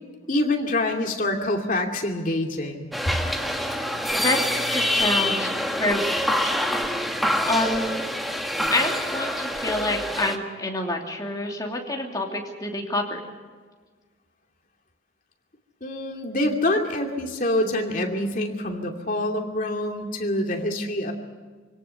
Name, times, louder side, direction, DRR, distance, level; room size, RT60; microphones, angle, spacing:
voice 1, 0.3-3.2 15.8-21.1, left 1 dB, 45° left, 2 dB, 2.6 m, -26 dB
sound 1, 2.9-10.4, left 1 dB, ahead, 1.3 m, -26 dB
voice 2, 4.7-6.5 7.4-8.0 8.7-13.2, left 2 dB, 20° left, 0 dB, 2.9 m, -27 dB
25.5 x 18.0 x 7.0 m, 1.5 s
head